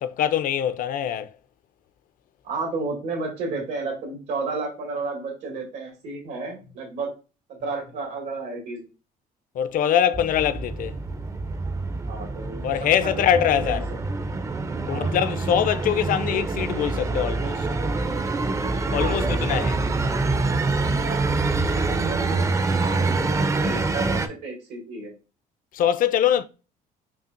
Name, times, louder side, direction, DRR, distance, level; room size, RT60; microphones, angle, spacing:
voice 1, 0.0-1.3 9.5-11.0 12.6-13.9 14.9-17.7 18.9-19.8 25.7-26.4, left 10 dB, 55° left, 0.4 m, -23 dB
voice 2, 2.4-7.1 7.6-8.9 12.0-13.1 13.4-13.8 14.9-15.2 19.0-19.7 22.0-24.2 24.4-25.1, right 3 dB, 85° right, 2.0 m, -32 dB
sound 1, 10.1-24.3, right 3 dB, 20° right, 0.4 m, -26 dB
5.5 x 2.4 x 2.5 m
cardioid pair, 110°, 17 cm